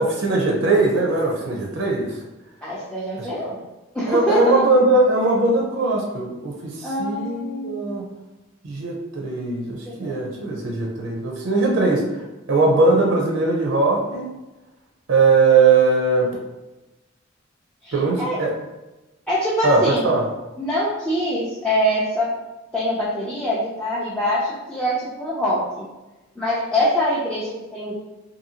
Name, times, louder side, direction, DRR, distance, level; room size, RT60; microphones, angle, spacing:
voice 1, 0.0-2.1 4.1-8.1 8.6-12.0 12.5-14.3 15.1-16.3 17.9-18.5 19.6-20.2, right 3 dB, 70° right, -1 dB, 0.5 m, -20 dB
voice 2, 2.6-3.6 3.9-4.6 6.8-7.9 9.9-10.4 17.8-18.4 19.3-20.1 20.6-22.4 22.7-25.6 26.4-27.9, equal, 5° left, -9 dB, 0.4 m, -24 dB
2.7 x 2.6 x 2.7 m, 1.1 s
head